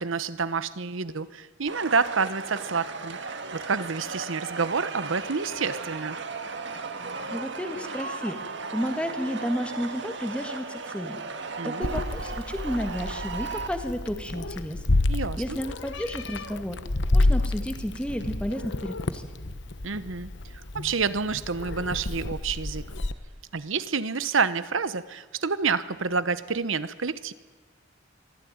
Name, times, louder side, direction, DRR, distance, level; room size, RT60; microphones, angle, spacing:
voice 1, 0.0-3.2 3.5-6.2 11.6-12.0 15.1-15.6 19.8-20.3 20.7-22.9 23.5-27.3, right 5 dB, 80° right, 14 dB, 1.0 m, -28 dB
sound 1, 1.7-13.7, right 4 dB, 65° right, 1.8 m, -36 dB
voice 2, 7.3-8.4 8.7-11.2 11.6-14.8 15.4-16.8 17.1-19.3, equal, 5° left, 6 dB, 1.9 m, -32 dB
Meow, 11.8-23.1, left 2 dB, 60° left, 1.2 m, -29 dB
23.5 x 15.5 x 9.5 m, 1.2 s
head